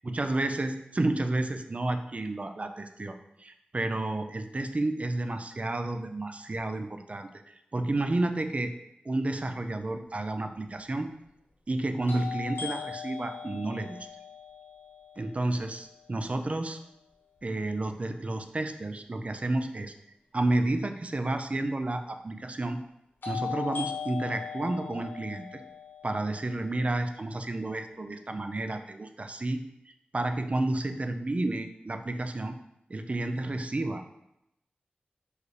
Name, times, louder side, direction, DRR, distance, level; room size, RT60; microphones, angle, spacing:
voice 1, 0.0-8.7 9.0-11.1 11.7-14.1 15.2-16.8 17.4-19.9 20.3-22.8 23.3-25.6 26.0-29.6 30.1-32.5 32.9-34.0, right 2 dB, 40° right, 7 dB, 0.4 m, -31 dB
sound 1, 10.1-10.2 12.1-16.0 23.2-27.2, left 7 dB, 75° left, 1.0 m, -39 dB
4.6 x 3.2 x 3.2 m, 0.84 s
cardioid pair, 50°, 3 cm